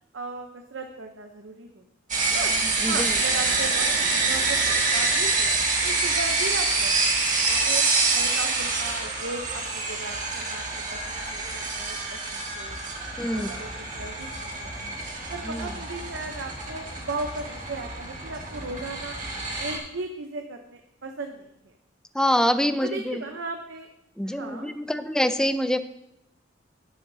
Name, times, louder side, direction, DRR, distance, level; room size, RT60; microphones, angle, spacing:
voice 1, 0.1-1.8 2.3-2.5 2.9-5.5 5.8-6.9 7.3-7.8 8.1-12.8 13.3-13.7 13.9-15.0 15.3-19.2 19.6-21.7 22.8-23.9 24.2-25.0, right 3 dB, 75° right, 4 dB, 0.8 m, -36 dB
sound 1, 2.1-19.8, right 3 dB, 40° right, 1.9 m, -26 dB
voice 2, 2.8-3.1 13.2-13.6 15.4-15.7 22.1-23.2 24.2-25.8, equal, 5° left, 10 dB, 0.4 m, -25 dB
12.0 x 10.0 x 2.8 m, 0.82 s
head